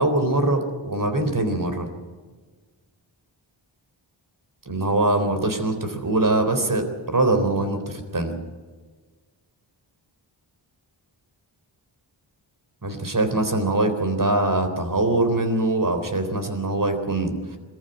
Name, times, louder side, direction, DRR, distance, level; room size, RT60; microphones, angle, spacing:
voice 1, 0.0-1.9 4.7-8.4 12.8-17.6, right 2 dB, 40° right, 7 dB, 3.9 m, -23 dB
22.5 x 14.0 x 9.1 m, 1.4 s
wide cardioid pair, 55°, 48 cm